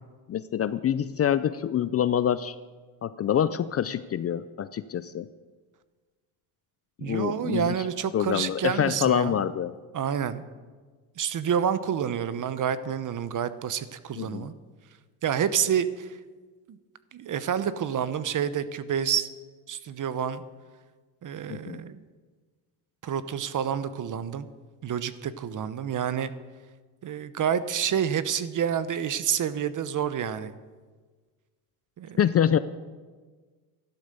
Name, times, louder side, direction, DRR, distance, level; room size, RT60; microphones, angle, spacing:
voice 1, 0.3-2.6 3.0-5.3 7.0-7.7 8.1-9.7 14.2-14.5 21.5-21.8 32.2-32.6, left 9 dB, 35° left, 15 dB, 0.5 m, -26 dB
voice 2, 7.0-9.4 9.9-10.4 11.2-14.5 15.2-16.1 16.7-16.8 17.1-19.3 19.7-20.4 21.2-22.0 23.0-24.5 24.8-26.3 27.0-30.5 32.0-32.2, right 8 dB, 40° right, 14 dB, 0.9 m, -28 dB
13.0 x 11.5 x 6.8 m, 1.4 s
cardioid pair, 100°, 46 cm